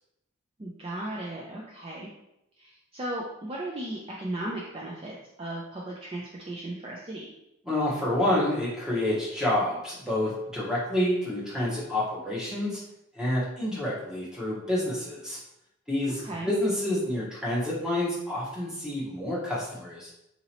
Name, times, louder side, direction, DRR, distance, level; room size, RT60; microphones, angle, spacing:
voice 1, 0.6-2.1 2.6-7.3 16.0-16.5, right 1 dB, 25° right, -3 dB, 0.4 m, -36 dB
voice 2, 7.7-12.8 13.2-15.4 15.9-20.1, left 1 dB, 5° right, -7 dB, 0.9 m, -28 dB
3.9 x 2.9 x 2.9 m, 0.85 s
head